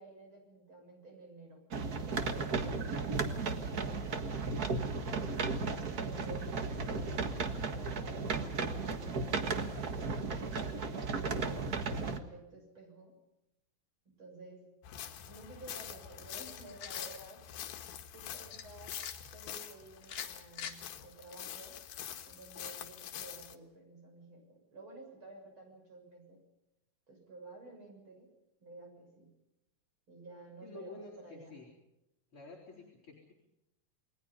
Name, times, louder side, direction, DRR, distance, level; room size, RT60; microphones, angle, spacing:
voice 1, 0.0-1.7 2.1-4.8 5.9-7.2 7.8-13.2 14.1-14.8 15.3-17.4 18.1-19.0 19.3-21.8 22.2-26.4 27.1-28.3 28.6-29.3 30.1-31.7 32.7-32.8, right 2 dB, 35° right, 2 dB, 7.5 m, -52 dB
sound 1, 1.7-12.2, right 4 dB, 50° right, 1.1 m, -35 dB
sound 2, 14.8-23.6, left 10 dB, 85° left, 3.3 m, -45 dB
sound 3, 16.3-17.2 18.5-19.1 20.0-20.8, left 8 dB, 65° left, 3.5 m, -44 dB
voice 2, 30.6-31.7 32.3-33.3, left 3 dB, 35° left, -3 dB, 4.8 m, -50 dB
29.0 x 21.0 x 5.5 m, 0.90 s
omnidirectional pair, 4.1 m